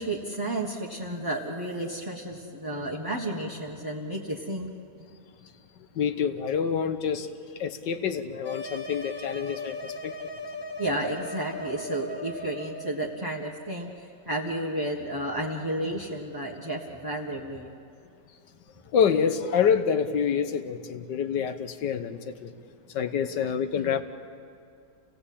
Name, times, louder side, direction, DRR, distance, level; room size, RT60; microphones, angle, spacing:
voice 1, 0.0-4.7 10.8-17.7 23.7-23.9, right 1 dB, 15° right, 1.4 m, -32 dB
voice 2, 5.9-7.3 7.5-10.2 18.9-22.5 22.9-24.0, left 7 dB, 80° left, 1.7 m, -27 dB
sound 1, 8.4-12.9, left 2 dB, 15° left, 1.3 m, -37 dB
28.0 x 17.5 x 8.6 m
omnidirectional pair, 1.9 m